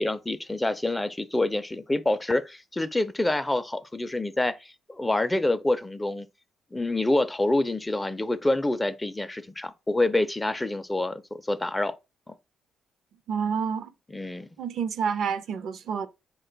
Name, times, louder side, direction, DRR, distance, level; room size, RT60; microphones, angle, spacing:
voice 1, 0.0-6.3 6.7-11.9 14.1-14.5, left 2 dB, 15° left, 0.4 m, -27 dB
voice 2, 13.3-13.9 14.6-16.1, right 6 dB, 70° right, 0.4 m, -28 dB
3.8 x 2.2 x 3.8 m
cardioid pair, 90°, 0 cm